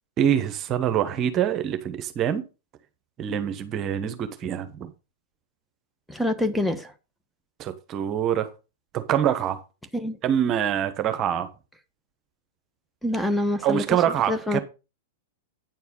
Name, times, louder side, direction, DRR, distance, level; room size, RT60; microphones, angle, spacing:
voice 1, 0.2-2.4 3.2-4.9 7.6-8.5 8.9-9.6 10.2-11.5 13.6-14.6, right 9 dB, 35° right, 1.2 m, -25 dB
voice 2, 6.1-6.9 9.9-10.2 13.0-13.8 14.3-14.6, left 1 dB, 5° left, 1.1 m, -25 dB
9.3 x 4.6 x 5.5 m
hypercardioid pair, 105°, 0 cm